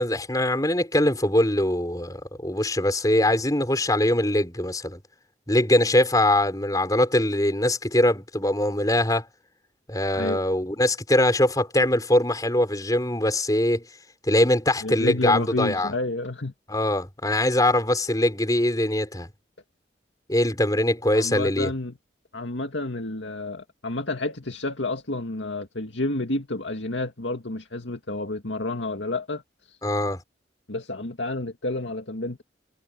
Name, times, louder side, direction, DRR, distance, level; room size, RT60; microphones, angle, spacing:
voice 1, 0.0-5.0 5.5-9.3 9.9-13.8 14.3-15.9 16.7-19.3 20.3-21.7 29.8-30.2, left 1 dB, 20° left, 5.5 m, -22 dB
voice 2, 14.8-16.5 21.1-22.0 22.3-29.8 30.7-32.4, left 2 dB, 85° left, 2.2 m, -30 dB
head